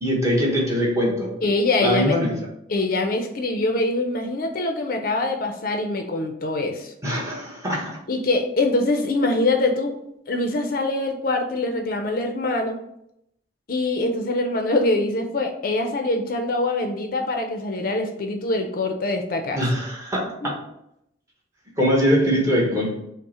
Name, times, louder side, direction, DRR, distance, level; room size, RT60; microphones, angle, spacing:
voice 1, 0.0-1.4 1.8-2.4 7.0-8.0 19.5-20.5 21.8-23.0, equal, 15° right, -3 dB, 1.0 m, -22 dB
voice 2, 1.4-2.2 2.7-6.9 8.1-9.9 10.3-12.8 13.7-19.6 20.4-20.5, left 2 dB, 50° left, 4 dB, 0.5 m, -24 dB
5.4 x 2.1 x 4.2 m, 0.78 s
head